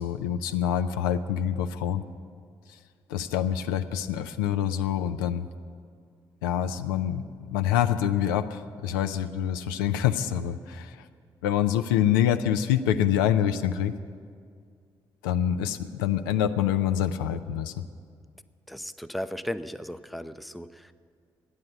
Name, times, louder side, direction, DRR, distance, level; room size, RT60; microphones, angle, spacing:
voice 1, 0.0-2.0 3.1-5.5 6.4-11.0 11.4-13.9 15.2-17.7, left 10 dB, 70° left, 9 dB, 0.4 m, -26 dB
voice 2, 18.7-20.9, left 1 dB, ahead, 11 dB, 0.5 m, -36 dB
12.5 x 9.7 x 7.9 m, 2.1 s
figure-of-eight pair, 40°, 11 cm